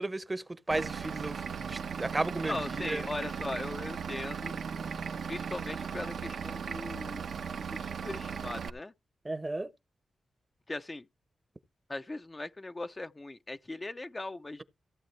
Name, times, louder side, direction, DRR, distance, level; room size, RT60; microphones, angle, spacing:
voice 1, 0.0-3.1 9.2-9.7, right 2 dB, 20° right, 0.8 m, -34 dB
Vehicle / Engine, 0.7-8.7, right 6 dB, 75° right, 0.9 m, -37 dB
voice 2, 2.4-4.6 5.3-7.2 7.7-8.9 10.7-11.1 11.9-14.6, left 2 dB, 25° left, 0.5 m, -39 dB
15.5 x 8.4 x 3.2 m
wide cardioid pair, 110°, 0 cm